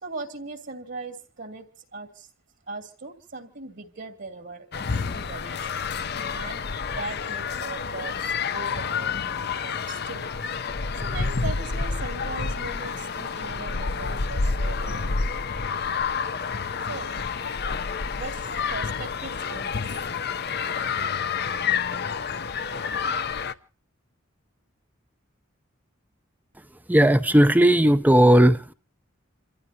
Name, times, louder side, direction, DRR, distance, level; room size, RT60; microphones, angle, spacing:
voice 1, 0.0-2.3 2.7-5.7 6.3-6.6 6.9-10.4 11.0-15.3 16.8-17.1 18.1-19.9, right 3 dB, 60° right, 2.8 m, -39 dB
sound 1, 4.7-23.5, left 5 dB, 50° left, 0.7 m, -29 dB
voice 2, 26.9-28.7, right 1 dB, 10° right, 0.6 m, -16 dB
28.5 x 14.5 x 2.8 m
head